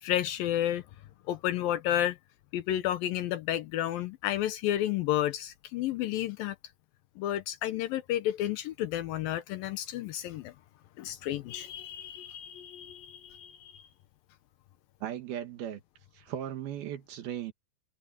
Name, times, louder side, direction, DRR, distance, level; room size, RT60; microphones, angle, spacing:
voice 1, 0.0-0.8 1.3-2.2 2.5-6.6 7.2-10.5 11.0-13.9, left 12 dB, 80° left, 2.6 m, -31 dB
voice 2, 15.0-15.8 16.2-17.5, right 10 dB, 85° right, 3.6 m, -37 dB
omnidirectional pair, 4.3 m